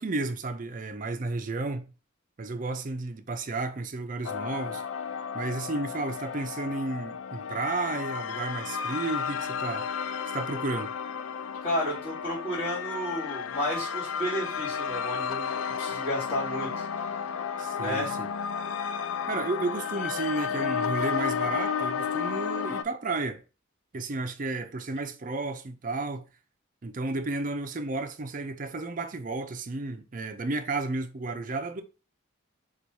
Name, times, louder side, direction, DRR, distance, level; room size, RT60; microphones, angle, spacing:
voice 1, 0.0-1.9 2.4-4.8 5.3-9.9 10.3-10.9 17.6-18.3 19.3-23.4 23.9-26.2 26.8-31.8, right 3 dB, 40° right, 0.5 m, -32 dB
sound 1, 4.2-22.8, left 6 dB, 85° left, 0.3 m, -32 dB
voice 2, 11.6-15.5 15.8-17.2 17.8-18.2, equal, 35° left, 2.5 m, -32 dB
4.0 x 2.4 x 4.6 m
head